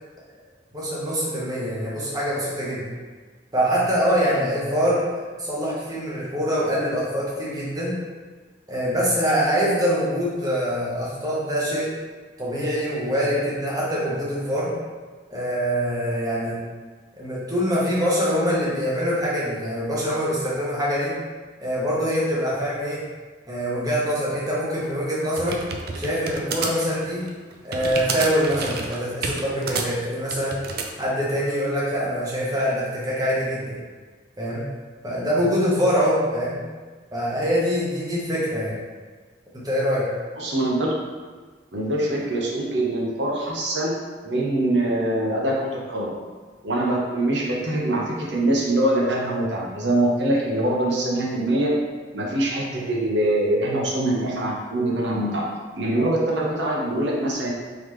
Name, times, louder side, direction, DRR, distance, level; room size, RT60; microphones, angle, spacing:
voice 1, 0.7-2.9 3.5-5.0 5.4-7.9 8.7-11.9 12.4-14.7 15.3-16.6 17.2-21.1 21.6-23.0 23.5-25.6 26.0-27.2 27.6-30.6 31.0-33.8 34.4-34.7 35.0-36.6 37.1-38.8 39.5-40.1, equal, 20° right, -7 dB, 1.1 m, -24 dB
sound 1, 24.8-30.9, right 4 dB, 60° right, 0.4 m, -30 dB
voice 2, 40.4-40.9 41.7-43.9 44.2-46.1 46.6-51.7 52.1-55.5 55.7-57.5, right 1 dB, 80° right, -3 dB, 0.9 m, -23 dB
3.8 x 3.3 x 3.2 m, 1.4 s
head